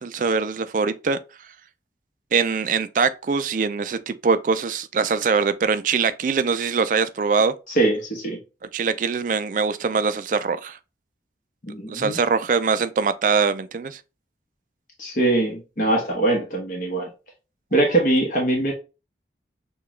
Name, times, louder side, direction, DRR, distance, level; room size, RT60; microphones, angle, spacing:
voice 1, 0.0-1.2 2.3-7.5 8.7-10.8 11.9-14.0, right 5 dB, 45° right, 0.3 m, -22 dB
voice 2, 7.7-8.4 11.6-12.2 15.0-17.1 17.7-18.7, right 2 dB, 50° left, 1.1 m, -22 dB
6.7 x 2.3 x 3.1 m
head